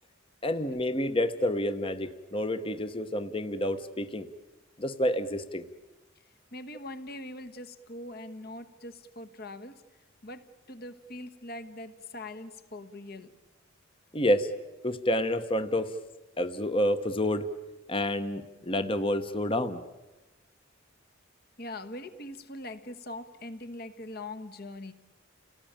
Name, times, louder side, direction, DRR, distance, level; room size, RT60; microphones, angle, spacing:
voice 1, 0.4-4.3 4.8-5.6 14.1-14.5 14.8-16.0 16.4-17.5 17.9-19.8, left 1 dB, 25° left, 10 dB, 1.0 m, -29 dB
voice 2, 6.5-9.8 10.2-13.3 21.6-24.9, left 1 dB, 50° left, 10 dB, 1.4 m, -42 dB
30.0 x 18.5 x 8.9 m, 1.1 s
head